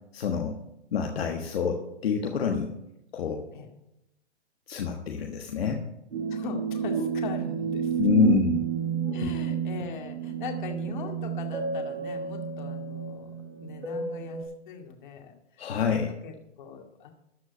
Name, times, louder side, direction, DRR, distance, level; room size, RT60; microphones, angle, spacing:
voice 1, 0.1-0.6 0.9-2.7 3.1-3.4 4.7-5.8 8.0-8.6 9.2-9.4 15.6-16.1, left 6 dB, 60° left, 3 dB, 1.4 m, -26 dB
sound 1, 6.1-14.4, right 7 dB, 70° right, 4.9 m, -31 dB
voice 2, 6.3-8.0 9.1-13.3 13.6-17.1, left 6 dB, 45° left, 4 dB, 2.2 m, -40 dB
13.5 x 4.7 x 8.4 m, 0.85 s
hypercardioid pair, 155°, 34 cm